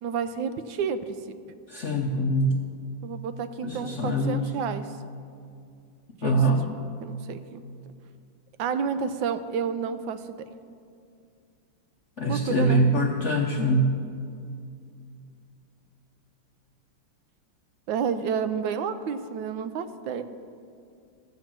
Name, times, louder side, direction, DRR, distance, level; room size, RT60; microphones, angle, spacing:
voice 1, 0.0-1.2 3.0-4.9 6.2-6.4 7.0-7.6 8.6-10.2 12.3-12.8 17.9-20.2, right 6 dB, 80° right, 11 dB, 1.3 m, -30 dB
voice 2, 1.7-2.6 3.6-4.5 6.2-6.6 12.2-14.0, right 1 dB, 60° left, 0 dB, 0.7 m, -23 dB
13.5 x 7.6 x 5.9 m, 2.4 s
omnidirectional pair, 2.1 m